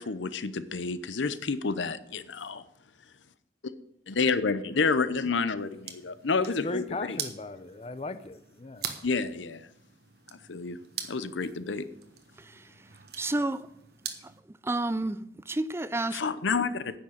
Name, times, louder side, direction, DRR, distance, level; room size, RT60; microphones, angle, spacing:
voice 1, 0.0-2.6 4.1-7.2 9.0-9.7 10.5-10.8 11.1-11.8 16.1-17.0, left 4 dB, 80° left, 0.7 m, -29 dB
sound 1, 5.6-14.4, right 8 dB, 55° right, 1.3 m, -43 dB
voice 2, 6.6-8.9, left 2 dB, 30° left, 0.6 m, -37 dB
voice 3, 13.2-13.7 14.6-16.2, right 2 dB, 15° right, 0.4 m, -30 dB
9.8 x 6.5 x 8.7 m
head